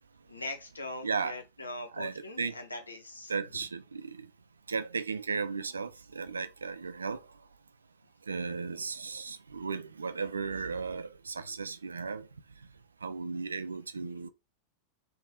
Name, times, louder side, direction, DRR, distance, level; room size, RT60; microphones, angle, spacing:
voice 1, 0.3-3.3, left 2 dB, 80° left, 1.0 m, -41 dB
voice 2, 1.0-1.4 1.9-2.5 3.3-4.3 4.7-7.2 8.3-12.3 13.0-14.3, right 5 dB, 75° right, 0.4 m, -35 dB
3.4 x 2.4 x 3.5 m
figure-of-eight pair, 90°, 0 cm